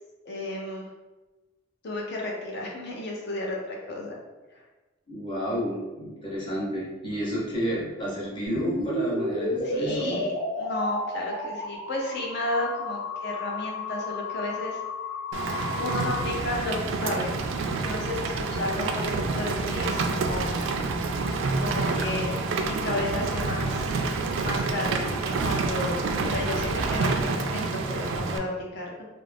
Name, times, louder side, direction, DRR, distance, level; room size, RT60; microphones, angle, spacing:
voice 1, 0.3-0.9 1.8-4.2 4.5-4.6 9.6-14.8 15.8-17.4 17.9-20.6 21.6-23.9 24.4-29.1, left 2 dB, 60° left, -1 dB, 0.6 m, -32 dB
voice 2, 5.1-10.2, equal, 25° left, -6 dB, 0.8 m, -31 dB
sound 1, 8.5-16.3, left 2 dB, 90° left, 1.3 m, -32 dB
Rain, 15.3-28.4, right 3 dB, 80° right, 0.3 m, -28 dB
2.5 x 2.0 x 3.2 m, 1.2 s
head